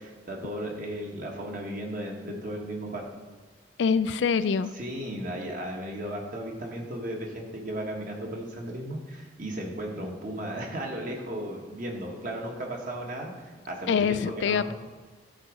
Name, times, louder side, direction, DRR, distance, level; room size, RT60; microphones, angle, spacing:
voice 1, 0.0-3.0 4.7-13.3 13.6-14.2 14.4-14.7, right 1 dB, 50° right, 0 dB, 1.4 m, -35 dB
voice 2, 3.8-4.7 13.9-14.7, left 6 dB, 80° left, 14 dB, 0.4 m, -25 dB
11.5 x 4.0 x 5.0 m, 1.4 s
head